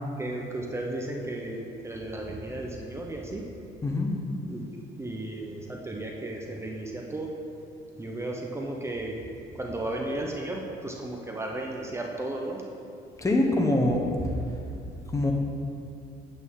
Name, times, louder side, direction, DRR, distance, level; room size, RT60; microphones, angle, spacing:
voice 1, 0.2-3.4 4.5-4.7 5.0-7.3 8.0-9.2 9.5-12.6, right 2 dB, 15° right, 0 dB, 0.8 m, -34 dB
voice 2, 13.2-14.0 15.1-15.3, left 1 dB, 20° left, 1 dB, 1.0 m, -23 dB
8.4 x 8.1 x 3.7 m, 2.5 s
cardioid pair, 110°, 17 cm